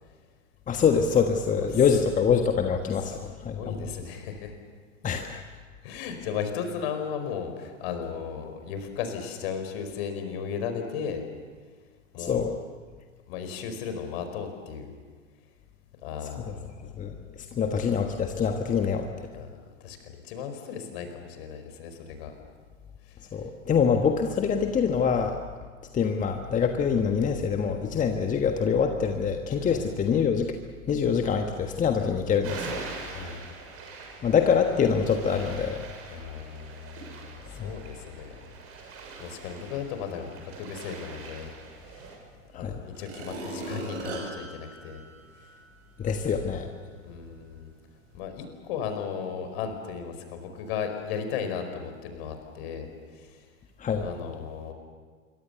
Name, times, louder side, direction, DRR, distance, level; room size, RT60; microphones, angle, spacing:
voice 1, 0.7-3.9 5.0-5.4 12.2-12.6 17.0-19.1 19.3-19.4 23.3-25.4 25.9-30.5 30.9-32.8 34.2-35.8 37.6-37.7 42.5-42.8 46.0-46.7 53.8-54.1, left 6 dB, 20° left, 5 dB, 1.5 m, -25 dB
voice 2, 3.5-4.5 5.8-11.2 12.1-12.4 13.3-14.9 16.0-16.9 17.5-17.7 19.3-19.5 19.8-22.3 23.1-23.2 29.6-29.9 32.9-33.4 36.1-38.3 39.2-41.5 41.8-42.1 42.5-45.0 45.4-45.5 46.1-46.2 46.5-46.6 47.0-47.7 48.1-52.9 53.1-53.5 54.0-54.7, left 7 dB, 50° left, 7 dB, 5.0 m, -36 dB
sound 1, 32.4-42.2, right 4 dB, 35° right, 6.7 m, -43 dB
sound 2, 42.2-42.3 42.9-45.7 46.2-46.3, right 2 dB, 55° right, 7.9 m, -38 dB
26.5 x 23.5 x 7.0 m, 1.5 s
figure-of-eight pair, 95°, 38 cm